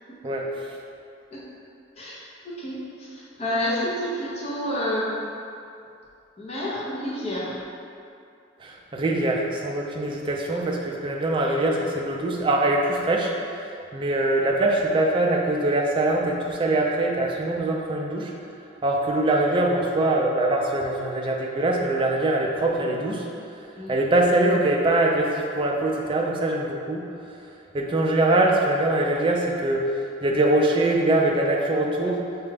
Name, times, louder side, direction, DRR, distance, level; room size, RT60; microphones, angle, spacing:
voice 1, 2.0-5.3 6.4-7.6 23.8-24.0, equal, 35° left, -8 dB, 0.7 m, -29 dB
voice 2, 8.6-13.6 13.9-18.3 18.8-23.3 23.9-27.1 27.7-32.2, right 2 dB, 25° right, -1 dB, 0.3 m, -23 dB
4.9 x 2.2 x 3.3 m, 2.5 s
head